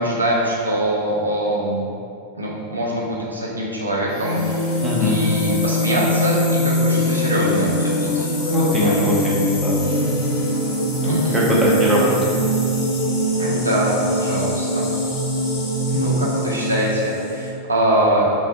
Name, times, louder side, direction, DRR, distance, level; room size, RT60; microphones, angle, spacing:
voice 1, 0.0-1.9 2.3-4.4 5.0-8.3 8.6-9.1 11.0-11.4 13.4-14.9 15.9-18.4, right 1 dB, 80° right, -4 dB, 0.4 m, -23 dB
sound 1, 4.1-17.5, equal, 40° left, 0.7 m, -22 dB
voice 2, 4.8-5.2 8.5-9.8 11.1-12.3, equal, 20° right, -6 dB, 0.7 m, -20 dB
3.3 x 2.1 x 2.9 m, 2.5 s
figure-of-eight pair, 90°, 0 cm